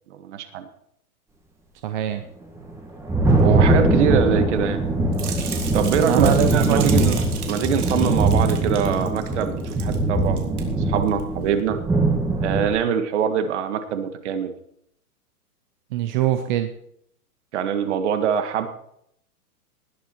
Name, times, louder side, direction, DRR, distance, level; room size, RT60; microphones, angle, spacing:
voice 1, 0.1-0.6 3.4-4.8 5.7-7.2 7.5-11.8 12.4-14.5 17.5-18.7, right 8 dB, 50° right, 9 dB, 1.7 m, -24 dB
voice 2, 1.8-2.2 6.0-6.9 15.9-16.7, right 12 dB, 30° right, 7 dB, 0.7 m, -23 dB
Thunder, 2.6-12.7, right 2 dB, 5° right, 1.8 m, -21 dB
sound 1, 5.1-10.0 10.2-10.6 11.1-11.2, right 6 dB, 75° right, 3.4 m, -35 dB
19.0 x 8.4 x 4.5 m, 0.71 s
hypercardioid pair, 150°, 45 cm